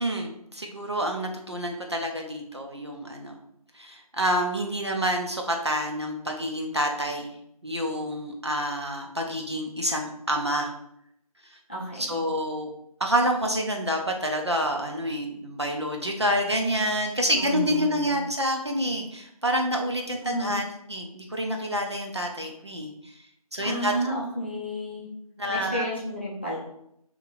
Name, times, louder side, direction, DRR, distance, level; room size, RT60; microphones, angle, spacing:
voice 1, 0.0-3.4 3.7-7.3 7.6-10.7 11.5-11.6 11.9-12.7 13.0-23.2 23.5-23.9 25.4-25.8, equal, 45° right, 2 dB, 0.5 m, -28 dB
voice 2, 11.7-12.2 17.3-18.2 20.2-20.6 23.6-25.1 25.5-26.6, equal, 20° left, -7 dB, 0.6 m, -31 dB
2.9 x 2.6 x 3.8 m, 0.75 s
figure-of-eight pair, 165°, 20 cm